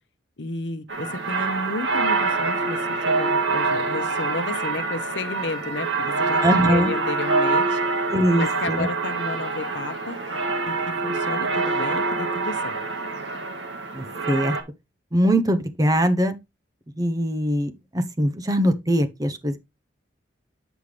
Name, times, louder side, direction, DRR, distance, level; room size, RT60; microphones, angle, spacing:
voice 1, 0.4-7.8 8.4-10.2 10.6-12.8, left 2 dB, 70° left, 0.9 m, -32 dB
sound 1, 0.9-14.6, right 3 dB, 75° right, 1.3 m, -25 dB
voice 2, 6.4-6.9 8.1-8.9 13.9-14.6 15.1-16.3 17.0-19.6, equal, 20° right, 0.7 m, -22 dB
8.0 x 5.5 x 3.2 m
head